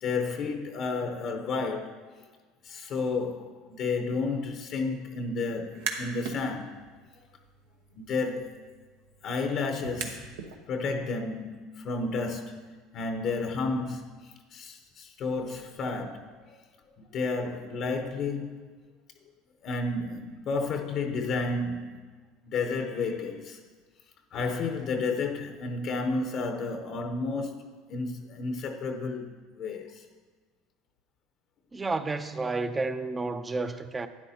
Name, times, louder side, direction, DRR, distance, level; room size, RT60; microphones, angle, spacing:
voice 1, 0.0-2.0 2.6-6.8 8.0-8.6 9.2-10.3 10.7-16.4 17.1-18.7 19.6-22.1 22.5-23.6 24.3-30.0, left 3 dB, 50° left, 0.8 m, -32 dB
sound 1, 5.6-6.4 6.8-10.5, right 6 dB, 90° right, 1.0 m, -40 dB
voice 2, 31.7-34.1, right 3 dB, 20° right, 0.5 m, -31 dB
11.5 x 9.7 x 2.8 m
supercardioid pair, 100°, 0 cm